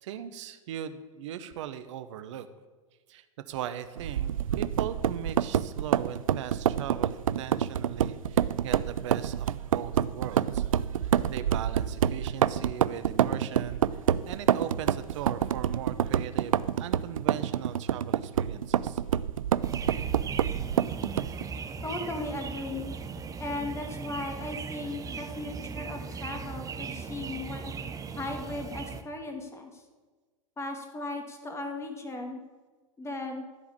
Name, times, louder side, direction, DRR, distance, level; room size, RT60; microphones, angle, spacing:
voice 1, 0.0-2.5 3.1-10.6 11.3-13.8 14.2-19.0, right 10 dB, 60° right, 11 dB, 1.0 m, -39 dB
sound 1, 4.0-21.5, right 9 dB, 75° right, 0.4 m, -27 dB
sound 2, 19.6-29.0, right 5 dB, 20° right, 0.9 m, -38 dB
voice 2, 21.8-22.9 23.4-27.7 28.2-29.8 30.6-32.4 33.0-33.4, left 2 dB, 15° left, 4 dB, 2.1 m, -37 dB
14.0 x 4.9 x 8.5 m, 1.4 s
figure-of-eight pair, 95°, 18 cm